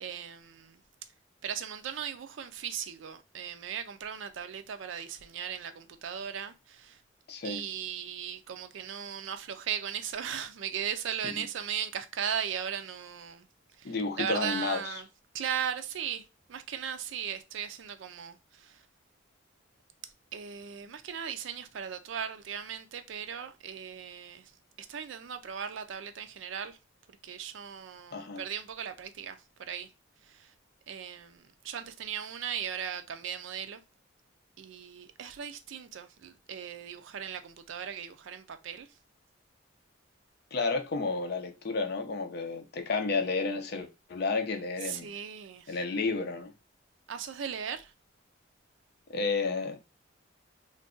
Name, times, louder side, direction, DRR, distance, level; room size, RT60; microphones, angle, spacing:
voice 1, 0.0-0.8 1.4-7.0 7.4-13.5 13.8-15.1 15.3-18.8 20.3-24.5 24.8-26.8 27.1-29.9 30.3-30.5 30.9-33.8 34.6-38.9 44.8-45.8 47.1-47.9, right 8 dB, 70° right, 0.4 m, -37 dB
voice 2, 7.3-7.6 11.2-11.4 13.8-15.0 28.1-28.4 40.5-45.1 45.7-46.5 49.1-49.8, left 3 dB, 50° left, 0.5 m, -31 dB
2.5 x 2.3 x 3.6 m
head